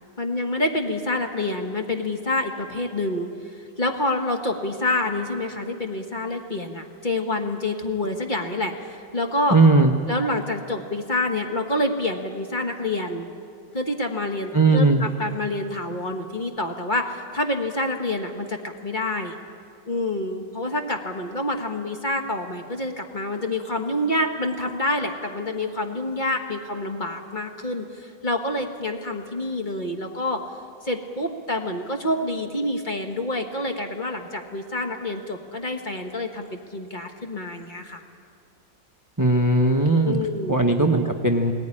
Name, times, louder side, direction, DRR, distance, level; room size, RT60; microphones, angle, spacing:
voice 1, 0.2-9.6 10.1-13.3 13.7-19.4 19.9-30.4 30.8-38.0 40.0-40.5, left 2 dB, 25° left, 3 dB, 1.5 m, -27 dB
voice 2, 9.5-9.9 14.5-15.0 39.2-40.2 40.5-41.5, right 2 dB, 20° right, 4 dB, 0.5 m, -18 dB
19.5 x 19.5 x 9.9 m, 2.3 s
omnidirectional pair, 2.1 m